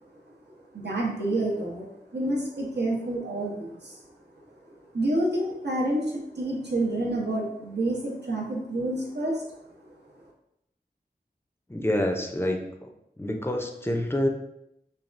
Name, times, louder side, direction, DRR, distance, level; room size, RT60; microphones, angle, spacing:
voice 1, 0.7-1.9 2.1-4.0 4.9-9.4, right 1 dB, 75° right, -3 dB, 0.7 m, -28 dB
voice 2, 11.7-12.6 13.2-14.3, left 1 dB, 15° left, 2 dB, 0.4 m, -27 dB
3.3 x 2.3 x 2.4 m, 0.80 s
wide cardioid pair, 40°, 17 cm